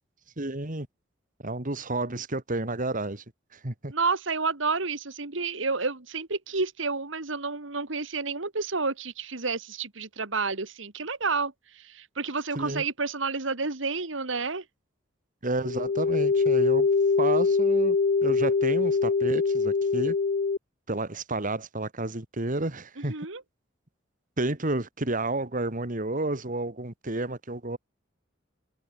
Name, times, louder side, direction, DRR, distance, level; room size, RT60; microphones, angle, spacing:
voice 1, 0.4-0.9 1.4-3.2 3.5-3.9 12.6-12.8 15.4-16.9 17.2-18.0 18.2-20.2 20.9-23.1 24.4-27.8, right 2 dB, 45° right, 2.3 m, -31 dB
voice 2, 3.9-14.6 23.0-23.4, right 4 dB, 70° right, 2.1 m, -30 dB
sound 1, 15.6-20.6, left 4 dB, 50° left, 0.5 m, -23 dB
open air
head